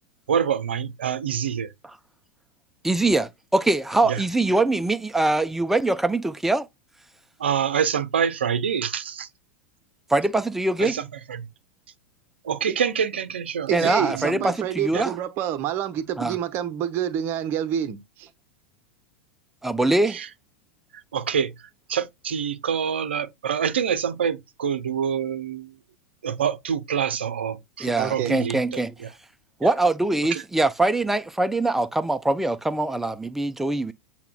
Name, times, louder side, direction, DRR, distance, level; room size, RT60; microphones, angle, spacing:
voice 1, 0.3-1.7 4.1-4.2 7.4-9.3 10.8-11.0 11.3-11.5 12.4-14.5 14.9-15.0 20.1-20.3 21.1-21.5 21.9-25.7 26.2-28.8 29.6-29.7 30.3-30.4, right 7 dB, 65° right, 0.6 m, -26 dB
voice 2, 2.8-6.7 10.1-11.0 13.7-15.1 16.2-16.4 19.6-20.2 27.8-28.9 29.6-33.9, right 2 dB, 5° right, 0.4 m, -23 dB
voice 3, 13.7-18.3 28.0-28.3, right 10 dB, 35° right, 0.8 m, -28 dB
8.0 x 2.8 x 2.2 m
figure-of-eight pair, 90°, 6 cm